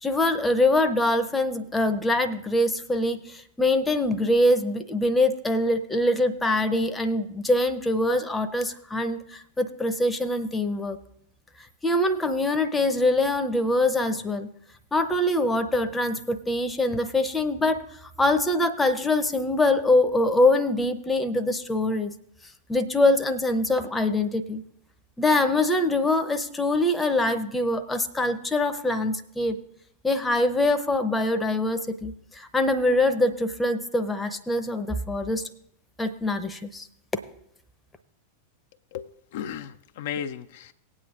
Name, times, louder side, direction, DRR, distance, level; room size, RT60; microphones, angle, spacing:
voice 1, 0.0-11.0 11.8-14.5 14.9-17.8 18.2-22.1 22.7-24.6 25.2-29.6 30.0-35.4 36.0-36.9, left 2 dB, 10° left, 8 dB, 0.7 m, -24 dB
voice 2, 38.9-40.7, left 8 dB, 55° left, 7 dB, 0.4 m, -35 dB
19.5 x 8.7 x 2.5 m, 0.74 s
figure-of-eight pair, 90°, 0 cm